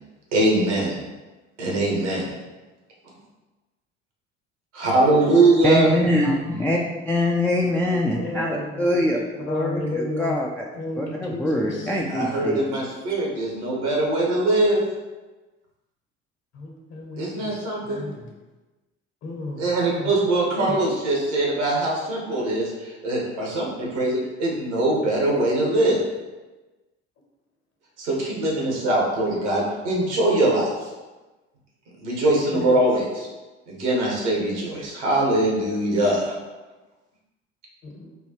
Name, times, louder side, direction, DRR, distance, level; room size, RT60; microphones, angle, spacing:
voice 1, 0.3-1.0 1.6-2.3 4.7-5.9 12.1-14.8 17.2-18.0 19.6-26.0 28.0-30.9 32.0-33.3 33.7-36.3, right 2 dB, 85° right, -3 dB, 1.1 m, -22 dB
voice 2, 5.6-6.8 7.1-9.2 9.5-10.6 11.0-12.6 13.1-13.2, left 1 dB, 5° left, -3 dB, 0.3 m, -23 dB
voice 3, 8.1-9.0 9.4-10.4 10.8-12.0 16.5-17.5 17.8-18.3 19.2-20.1 20.6-20.7 32.5-32.7 37.8-38.1, left 2 dB, 50° left, 0 dB, 1.1 m, -33 dB
4.4 x 2.3 x 2.9 m, 1.2 s
hypercardioid pair, 60°, 33 cm